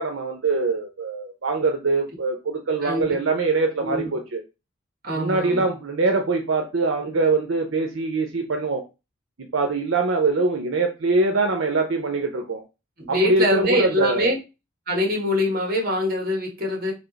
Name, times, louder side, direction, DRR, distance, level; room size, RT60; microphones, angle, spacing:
voice 1, 0.0-4.4 5.1-8.8 9.5-12.6 13.1-14.3, right 3 dB, 75° right, 4 dB, 0.7 m, -23 dB
voice 2, 2.8-3.2 3.8-4.1 5.0-5.6 13.0-14.4 14.9-16.9, left 1 dB, 45° right, 1 dB, 1.4 m, -24 dB
3.5 x 2.8 x 3.9 m, 0.27 s
head